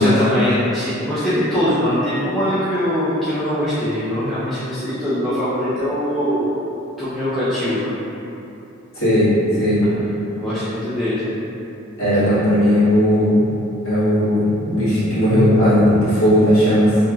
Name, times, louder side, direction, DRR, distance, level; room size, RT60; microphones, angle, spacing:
voice 1, 0.0-6.5 7.0-7.9 9.8-10.0 10.3-11.3 12.2-12.4, equal, ahead, -15 dB, 0.5 m, -22 dB
voice 2, 8.9-9.3 9.6-9.8 12.0-13.4 13.8-17.0, equal, 75° left, -13 dB, 1.4 m, -16 dB
2.8 x 2.8 x 2.3 m, 2.9 s
head